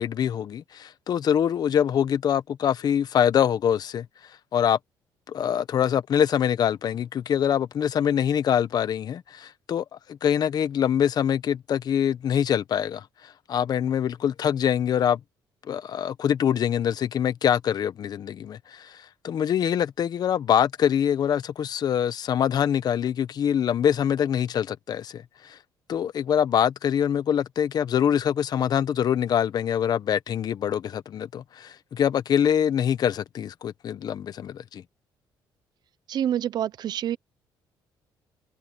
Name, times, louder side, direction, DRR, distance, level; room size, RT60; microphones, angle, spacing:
voice 1, 0.0-4.8 5.3-15.2 15.6-25.6 25.9-34.8, left 9 dB, 55° left, 1.1 m, -24 dB
voice 2, 36.1-37.2, right 10 dB, 55° right, 0.7 m, -27 dB
cardioid pair, 110°, 8 cm